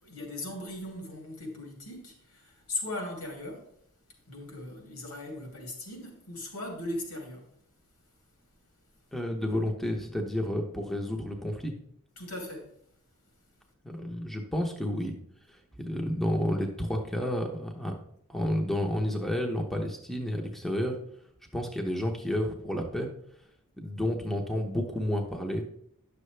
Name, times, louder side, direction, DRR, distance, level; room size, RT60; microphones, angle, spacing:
voice 1, 0.0-3.7 4.3-7.5 12.2-12.7, left 1 dB, 80° left, 2.9 m, -38 dB
voice 2, 9.1-11.7 13.8-15.1 15.5-15.6 15.8-17.9 18.3-21.0 21.5-23.1 23.8-25.6, left 1 dB, ahead, 0.8 m, -30 dB
10.5 x 6.7 x 3.3 m
head